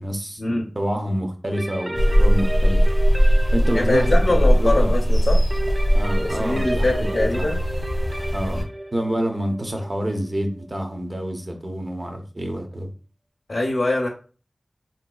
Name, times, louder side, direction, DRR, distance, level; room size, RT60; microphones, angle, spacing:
voice 1, 0.0-2.8 3.5-4.2 4.6-5.0 5.9-7.5 8.3-12.9, right 1 dB, 40° right, 4 dB, 0.7 m, -28 dB
sound 1, 1.5-11.2, right 1 dB, 20° right, 0.3 m, -33 dB
sound 2, 1.9-8.6, equal, 35° left, 0.9 m, -19 dB
voice 2, 3.7-5.4 6.4-7.6 13.5-14.1, left 2 dB, 70° left, -1 dB, 0.6 m, -23 dB
3.9 x 2.7 x 2.2 m, 0.37 s
wide cardioid pair, 55°, 0 cm